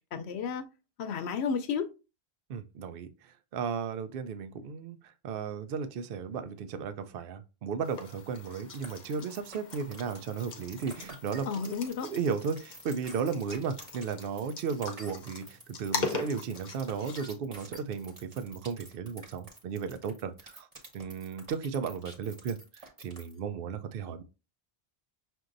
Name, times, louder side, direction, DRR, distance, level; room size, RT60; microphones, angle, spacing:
voice 1, 0.1-0.7 1.0-1.9 11.5-12.1, left 6 dB, 85° left, 0.9 m, -32 dB
voice 2, 2.5-5.0 5.2-11.7 12.0-20.7 20.9-24.2, right 6 dB, 65° right, 0.7 m, -35 dB
sound 1, 7.8-17.3, left 4 dB, 50° left, 0.8 m, -41 dB
sound 2, 8.7-23.4, right 2 dB, 30° right, 1.1 m, -49 dB
6.0 x 2.7 x 2.5 m
omnidirectional pair, 1.1 m